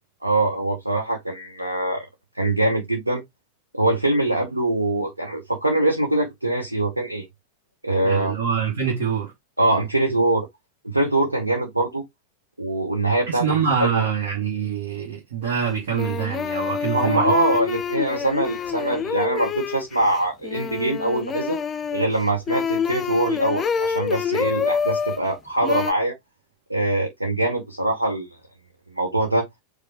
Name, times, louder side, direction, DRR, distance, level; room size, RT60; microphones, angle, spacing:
voice 1, 0.2-2.1 2.4-3.2 3.7-7.3 7.8-8.3 9.6-10.5 10.9-12.0 12.6-13.5 13.8-14.0 16.9-21.6 21.9-26.1 26.7-28.3 28.9-29.5, right 2 dB, 85° right, 0.8 m, -23 dB
voice 2, 8.0-9.3 13.3-17.4, right 7 dB, 60° right, 1.2 m, -25 dB
sound 1, 15.4-15.5 15.9-25.2 25.6-25.9, left 6 dB, 20° left, 0.4 m, -27 dB
5.0 x 2.2 x 4.2 m
figure-of-eight pair, 90°, 0 cm